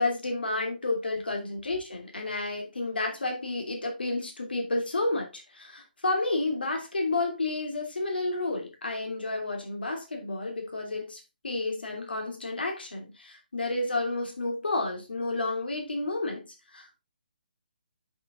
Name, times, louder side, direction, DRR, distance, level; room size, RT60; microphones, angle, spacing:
voice 1, 0.0-16.5 16.7-17.0, left 2 dB, 80° left, 2.8 m, -31 dB
7.6 x 5.8 x 3.7 m
figure-of-eight pair, 150°, 5 cm